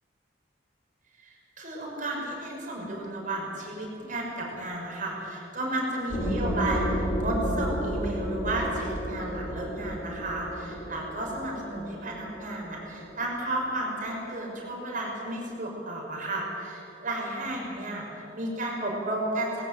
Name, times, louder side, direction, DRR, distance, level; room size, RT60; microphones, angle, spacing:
voice 1, 1.2-19.5, right 1 dB, 45° right, -1 dB, 5.7 m, -33 dB
sound 1, 6.1-13.5, equal, 75° left, 6.8 m, -32 dB
19.5 x 17.0 x 8.9 m, 2.9 s
head